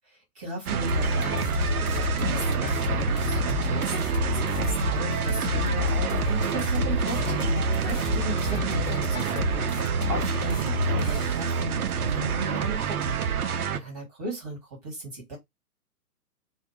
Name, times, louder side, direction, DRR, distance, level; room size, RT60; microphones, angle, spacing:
voice 1, 0.1-13.3 13.7-15.4, right 2 dB, 25° right, 1.0 m, -36 dB
sound 1, 0.7-13.8, right 7 dB, 65° right, 0.5 m, -28 dB
sound 2, 0.9-11.5, left 6 dB, 55° left, 0.7 m, -30 dB
2.2 x 2.0 x 2.9 m
figure-of-eight pair, 120°, 48 cm